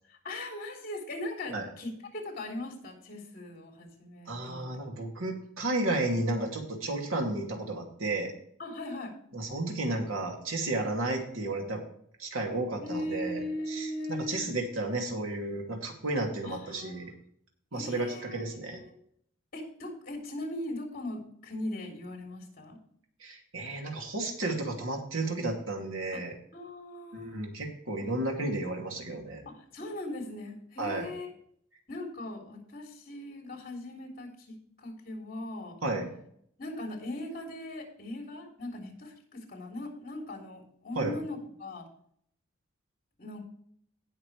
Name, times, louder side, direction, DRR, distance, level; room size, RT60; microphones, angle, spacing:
voice 1, 0.1-4.6 8.6-9.1 12.8-14.5 16.4-17.1 17.7-19.0 19.5-22.8 26.5-27.4 29.4-31.3 31.9-35.8 36.6-41.9 43.2-43.4, left 1 dB, 45° left, 1 dB, 3.4 m, -39 dB
voice 2, 4.3-8.3 9.3-11.8 12.2-17.1 17.7-18.8 23.2-26.3 27.1-29.4 30.8-31.1 35.8-36.1 40.9-41.1, right 2 dB, 90° right, 1 dB, 2.6 m, -32 dB
18.0 x 6.1 x 3.3 m, 0.65 s
head